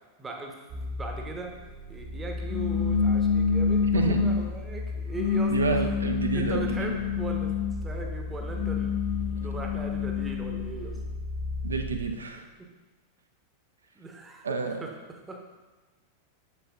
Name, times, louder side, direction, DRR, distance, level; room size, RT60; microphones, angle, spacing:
voice 1, 0.2-1.5 1.9-5.9 6.3-7.5 7.8-11.0 14.0-14.9 15.3-15.4, right 3 dB, 15° right, 2 dB, 0.8 m, -39 dB
sound 1, 0.7-12.1, left 2 dB, 45° right, 1.2 m, -35 dB
sound 2, 2.5-4.5 5.1-7.8 8.4-10.7, left 6 dB, 40° left, 0.4 m, -27 dB
voice 2, 3.9-4.2 5.5-6.9 11.6-12.5 14.4-14.8, right 4 dB, 75° right, 5 dB, 0.6 m, -29 dB
7.1 x 6.6 x 2.3 m, 1.3 s
figure-of-eight pair, 90°, 0 cm